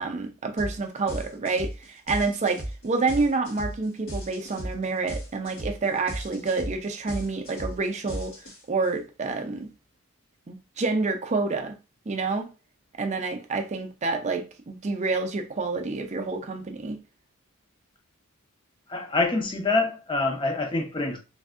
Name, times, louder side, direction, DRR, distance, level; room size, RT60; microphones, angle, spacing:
voice 1, 0.0-8.3 8.7-9.7 10.5-11.8 12.1-12.5 13.0-17.0, right 3 dB, 30° right, 0.5 m, -28 dB
sound 1, 0.6-0.8 1.1-8.9, right 1 dB, 60° left, 1.8 m, -35 dB
voice 2, 18.9-21.2, left 3 dB, 20° left, 0.6 m, -26 dB
3.4 x 2.6 x 2.4 m
head